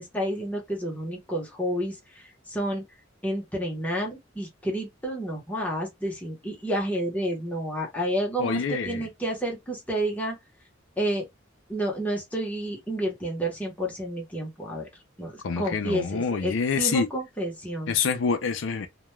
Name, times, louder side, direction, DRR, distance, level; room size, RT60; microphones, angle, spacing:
voice 1, 0.0-2.8 3.2-10.4 11.0-11.3 11.7-14.9 15.2-17.9, right 1 dB, 10° left, 0.9 m, -30 dB
voice 2, 8.4-9.1 15.4-17.1 17.9-18.9, left 5 dB, 75° left, 0.4 m, -26 dB
2.2 x 2.2 x 3.0 m
head